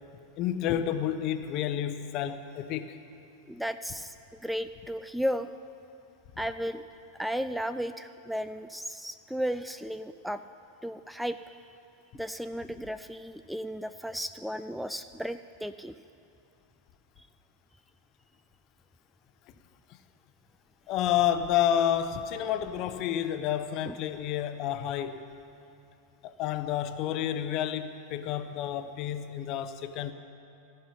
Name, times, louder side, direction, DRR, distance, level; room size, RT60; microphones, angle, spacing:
voice 1, 0.4-2.9 20.9-25.3 26.2-30.1, left 10 dB, 45° left, 10 dB, 0.8 m, -30 dB
voice 2, 3.5-5.5 6.4-6.8 7.1-10.4 10.8-11.6 12.1-16.0 17.2-17.3 23.9-24.0, equal, ahead, 12 dB, 0.3 m, -34 dB
15.0 x 5.7 x 10.0 m, 2.7 s
hypercardioid pair, 95°, 0 cm